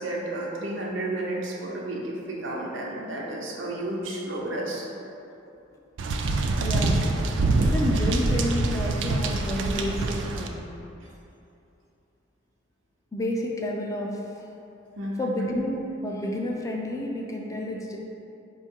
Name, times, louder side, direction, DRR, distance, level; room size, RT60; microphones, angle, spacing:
voice 1, 0.0-4.9 15.0-15.4, right 1 dB, 90° right, -3 dB, 0.7 m, -32 dB
sound 1, 6.0-10.5, right 2 dB, 70° right, 0.3 m, -25 dB
voice 2, 6.6-7.0 7.6-10.7 13.1-14.5 15.2-18.0, left 1 dB, 15° left, 0 dB, 0.3 m, -30 dB
4.5 x 2.3 x 4.3 m, 2.8 s
head